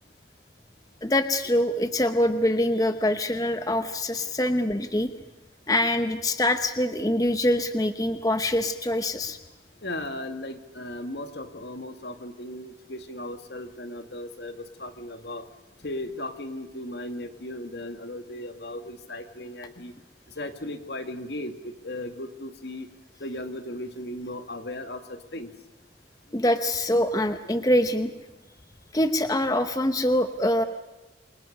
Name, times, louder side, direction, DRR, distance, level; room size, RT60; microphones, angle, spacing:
voice 1, 1.0-5.1 5.7-9.4 26.3-28.1 28.9-30.6, left 1 dB, 20° left, 9 dB, 0.9 m, -24 dB
voice 2, 9.8-15.4 15.8-19.9 20.4-22.9 23.2-25.5, left 1 dB, 70° left, 7 dB, 2.2 m, -36 dB
28.5 x 24.0 x 6.6 m, 1.1 s
head